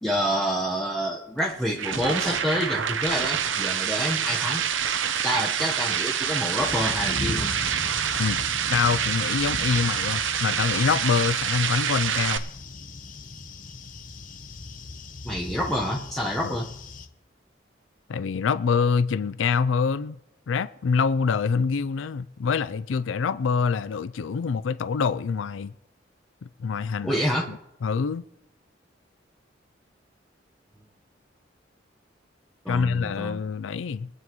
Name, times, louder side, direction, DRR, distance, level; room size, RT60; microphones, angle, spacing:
voice 1, 0.0-4.6 5.2-7.5 15.2-16.7 27.0-27.5 32.6-33.4, equal, ahead, 1.0 m, -27 dB
sound 1, 1.4-12.4, right 8 dB, 85° right, 0.8 m, -27 dB
sound 2, 6.6-17.1, left 2 dB, 45° left, 0.9 m, -38 dB
voice 2, 8.7-12.4 16.4-16.6 18.1-20.2 20.5-25.7 26.6-27.2 27.5-28.2 32.7-34.1, left 5 dB, 85° left, 0.4 m, -25 dB
24.0 x 9.5 x 3.1 m
head